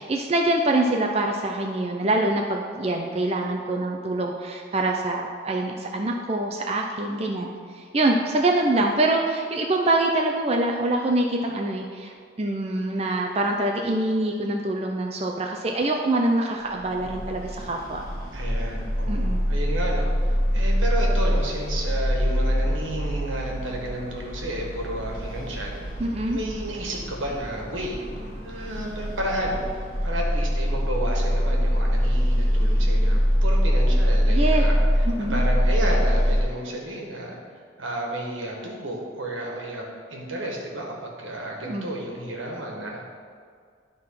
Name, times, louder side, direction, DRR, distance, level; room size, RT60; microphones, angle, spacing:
voice 1, 0.0-18.0 19.1-19.5 26.0-26.4 34.3-34.6 35.2-35.4 41.6-41.9, right 2 dB, 30° right, 1 dB, 0.5 m, -25 dB
sound 1, 16.8-36.4, equal, 40° left, 1.5 m, -24 dB
voice 2, 18.3-26.0 26.3-34.7 35.3-37.4 37.8-39.8 40.1-43.0, right 1 dB, 85° right, -1 dB, 1.6 m, -32 dB
11.0 x 3.8 x 5.7 m, 2.1 s
head